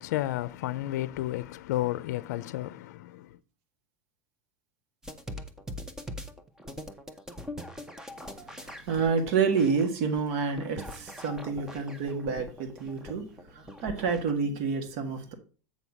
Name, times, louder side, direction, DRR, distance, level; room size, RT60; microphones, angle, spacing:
voice 1, 0.0-3.3, left 15 dB, 75° left, 0.5 m, -32 dB
sound 1, 5.0-14.3, equal, 5° right, 0.8 m, -42 dB
voice 2, 8.5-15.3, right 5 dB, 60° right, 1.6 m, -29 dB
8.2 x 4.1 x 5.8 m
supercardioid pair, 145°, 9 cm